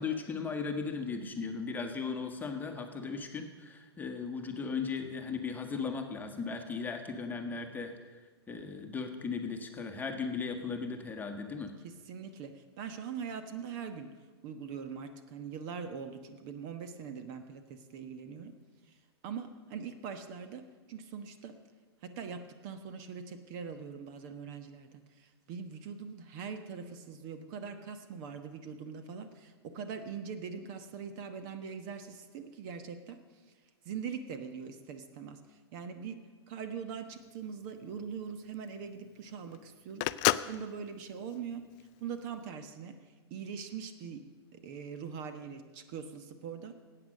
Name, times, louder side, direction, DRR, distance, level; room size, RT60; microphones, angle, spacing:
voice 1, 0.0-7.9 8.5-11.7, left 5 dB, 10° left, 4 dB, 1.3 m, -37 dB
voice 2, 11.8-14.1 14.4-18.6 18.9-19.0 19.2-21.6 22.0-33.2 33.8-36.2 36.5-40.1 40.5-41.6 42.0-43.0 43.3-46.7, right 6 dB, 45° right, 9 dB, 1.1 m, -42 dB
Telephone, 37.1-42.3, left 17 dB, 35° left, 0.4 m, -34 dB
14.5 x 8.9 x 6.4 m, 1.4 s
hypercardioid pair, 115°, 14 cm